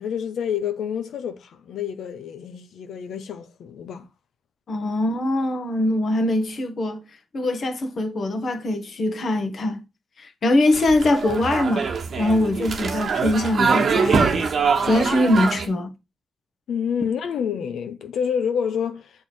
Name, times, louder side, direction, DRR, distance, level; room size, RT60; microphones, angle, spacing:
voice 1, 0.0-4.0 16.7-19.1, left 7 dB, 80° left, 0.8 m, -28 dB
voice 2, 4.7-7.0 7.3-9.8 10.2-11.9 12.2-14.5 14.8-15.9, left 1 dB, 60° left, 1.3 m, -22 dB
sound 1, 10.7-15.7, right 5 dB, 60° right, 1.1 m, -23 dB
6.5 x 3.5 x 4.4 m
cardioid pair, 60°, 0 cm